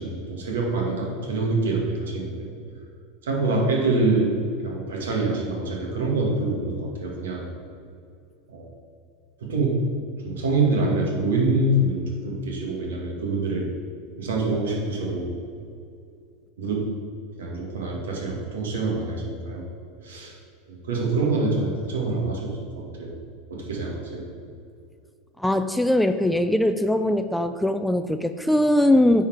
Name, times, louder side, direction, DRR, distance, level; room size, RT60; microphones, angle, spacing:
voice 1, 0.0-2.5 3.2-7.4 8.5-8.7 9.4-9.7 10.2-13.7 14.2-15.4 16.6-16.8 17.4-19.7 20.0-20.3 20.7-23.1 23.5-24.2, right 2 dB, 70° right, -2 dB, 2.0 m, -25 dB
voice 2, 25.4-29.3, left 1 dB, 5° left, 9 dB, 0.4 m, -21 dB
9.3 x 4.3 x 4.8 m, 2.4 s
figure-of-eight pair, 85°, 0 cm